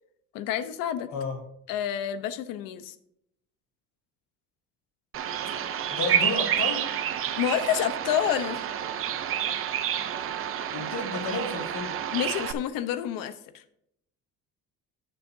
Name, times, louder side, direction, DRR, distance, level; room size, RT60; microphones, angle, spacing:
voice 1, 0.3-1.1 1.7-2.9 7.4-8.6 12.1-13.6, left 10 dB, 85° left, 11 dB, 1.0 m, -28 dB
Bird vocalization bird call bird song, 5.1-12.5, right 9 dB, 40° right, 0.7 m, -29 dB
voice 2, 5.9-6.9 10.7-11.9, left 3 dB, 55° left, -1 dB, 3.2 m, -32 dB
17.5 x 6.8 x 2.7 m, 0.75 s
cardioid pair, 155°, 33 cm